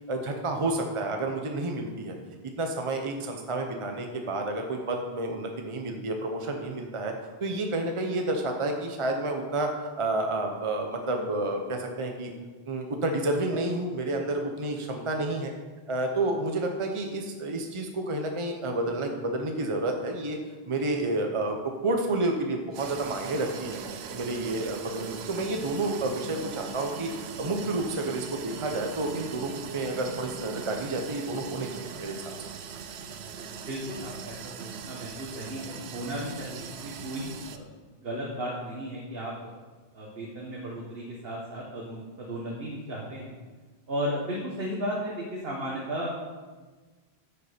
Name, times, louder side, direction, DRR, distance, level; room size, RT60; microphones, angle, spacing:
voice 1, 0.1-2.2 2.6-7.1 7.4-9.7 10.0-12.3 12.7-15.5 15.9-20.4 20.7-21.6 21.8-23.8 24.1-27.1 27.4-32.2, right 2 dB, 30° right, 3 dB, 0.9 m, -30 dB
sound 1, 22.7-37.6, right 7 dB, 85° right, 0.9 m, -40 dB
voice 2, 33.4-37.7 38.0-39.5 39.9-43.3 43.9-46.1, equal, 65° right, -3 dB, 1.6 m, -35 dB
9.5 x 6.9 x 5.1 m, 1.3 s
omnidirectional pair, 1.1 m